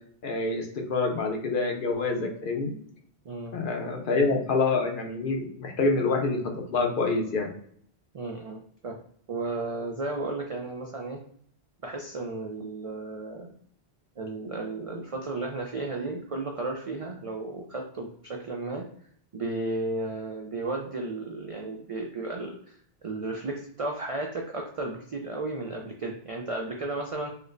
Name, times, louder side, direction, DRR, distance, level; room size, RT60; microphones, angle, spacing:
voice 1, 0.2-2.7 3.5-7.5, left 3 dB, 60° left, 2 dB, 0.8 m, -27 dB
voice 2, 3.2-3.6 8.1-9.0 9.3-11.2 11.8-13.5 14.2-18.9 19.3-22.6 23.0-27.3, right 2 dB, 60° right, 1 dB, 0.3 m, -34 dB
4.4 x 2.0 x 2.5 m, 0.64 s
omnidirectional pair, 1.1 m